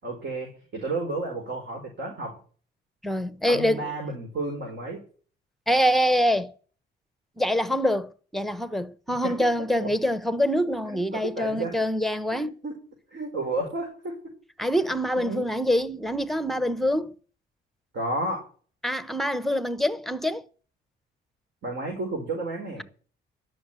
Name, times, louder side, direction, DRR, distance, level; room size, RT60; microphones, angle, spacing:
voice 1, 0.0-2.3 3.5-5.0 9.2-9.4 9.8-9.9 10.9-11.8 12.3-12.7 13.1-14.1 14.7-14.8 15.2-15.4 17.9-18.4 21.6-22.8, right 2 dB, 60° right, 4.9 m, -32 dB
voice 2, 3.0-3.9 5.7-6.5 7.4-12.6 14.6-17.2 18.8-20.5, equal, ahead, 1.0 m, -25 dB
12.0 x 6.4 x 8.9 m
cardioid pair, 90°, 20 cm